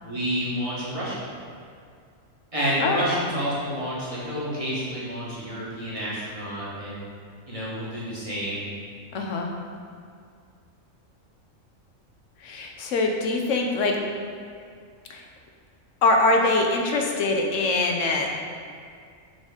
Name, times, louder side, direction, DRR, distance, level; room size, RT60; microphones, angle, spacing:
voice 1, 0.0-1.2 2.5-7.0 7.5-8.7, equal, 25° right, -9 dB, 1.7 m, -29 dB
voice 2, 9.1-9.5 12.4-13.9 15.1-15.2 16.0-18.3, left 2 dB, 70° left, 1 dB, 1.1 m, -23 dB
6.2 x 3.9 x 5.0 m, 2.2 s
omnidirectional pair, 1.4 m